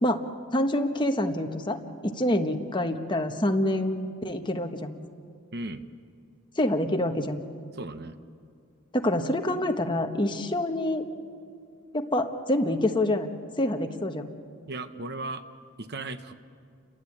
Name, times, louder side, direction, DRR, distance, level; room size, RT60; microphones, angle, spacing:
voice 1, 0.5-1.8 2.0-5.0 6.6-7.4 8.9-11.0 11.9-14.3, left 1 dB, 20° left, 5 dB, 1.3 m, -26 dB
voice 2, 5.5-5.9 7.7-8.2 14.7-15.4 15.8-16.3, right 2 dB, 45° right, 10 dB, 1.0 m, -36 dB
29.5 x 22.5 x 8.7 m, 2.3 s
head